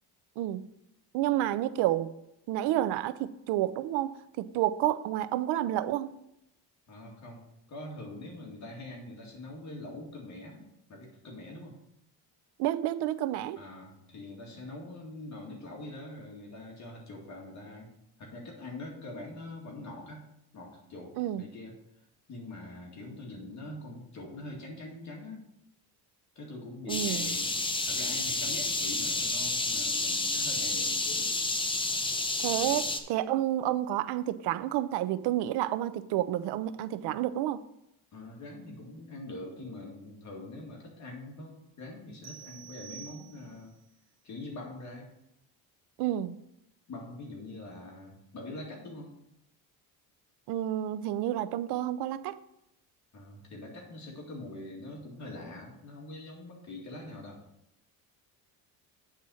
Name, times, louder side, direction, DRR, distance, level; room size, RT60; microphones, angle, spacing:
voice 1, 0.4-0.7 1.1-2.1 2.5-6.1 12.6-13.6 21.2-21.5 26.9-27.3 32.4-37.6 46.0-46.4 50.5-52.4, right 13 dB, 90° right, 0.6 m, -30 dB
voice 2, 6.9-7.4 7.7-10.6 10.9-11.8 13.5-17.9 18.2-20.2 20.5-21.7 22.3-25.4 26.4-27.6 27.9-31.3 32.6-32.8 38.1-43.7 44.2-45.1 46.9-49.1 53.1-57.4, left 2 dB, 45° left, 2.3 m, -44 dB
sound 1, 26.9-33.0, left 3 dB, 15° left, 0.7 m, -30 dB
sound 2, 42.2-43.8, right 9 dB, 40° right, 1.1 m, -48 dB
8.6 x 4.1 x 6.3 m
cardioid pair, 130°, 39 cm